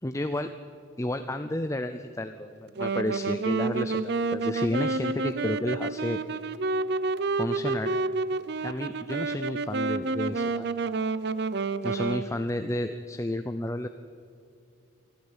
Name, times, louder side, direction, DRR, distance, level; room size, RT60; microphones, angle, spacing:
voice 1, 0.0-0.5 1.0-6.2 7.4-7.9 8.6-10.7 11.8-13.9, left 1 dB, 15° left, 8 dB, 0.5 m, -31 dB
Wind instrument woodwind instrument, 2.8-12.3, right 3 dB, 50° right, 0.6 m, -29 dB
24.0 x 13.0 x 8.8 m, 2.4 s
head